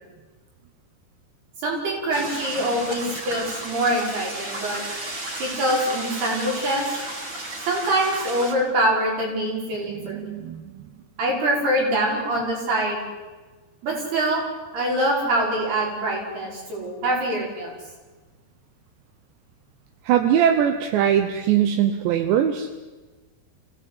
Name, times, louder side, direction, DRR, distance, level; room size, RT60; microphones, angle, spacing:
voice 1, 1.6-4.8 5.4-6.9 7.7-10.3 11.2-13.0 13.8-14.4 14.7-17.7, right 1 dB, 60° right, -2 dB, 7.7 m, -24 dB
sound 1, 2.1-8.5, right 1 dB, 30° right, 3.1 m, -33 dB
voice 2, 9.9-10.8 20.0-22.7, right 9 dB, 80° right, 7 dB, 3.2 m, -21 dB
27.5 x 16.5 x 8.5 m, 1.3 s
omnidirectional pair, 5.1 m